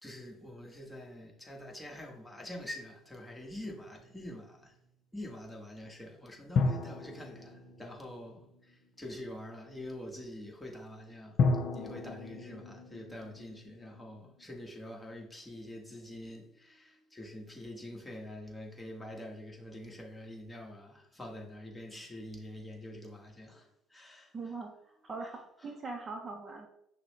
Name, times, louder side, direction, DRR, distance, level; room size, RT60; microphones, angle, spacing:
voice 1, 0.0-4.8 5.1-11.4 11.7-24.3 25.6-25.7, left 1 dB, 10° left, 1.3 m, -46 dB
sound 1, 3.9-4.8 6.6-8.9 11.4-14.4, left 3 dB, 55° left, 0.5 m, -34 dB
voice 2, 24.3-26.7, right 3 dB, 35° right, 0.6 m, -42 dB
5.9 x 2.1 x 3.1 m
hypercardioid pair, 65°, 0 cm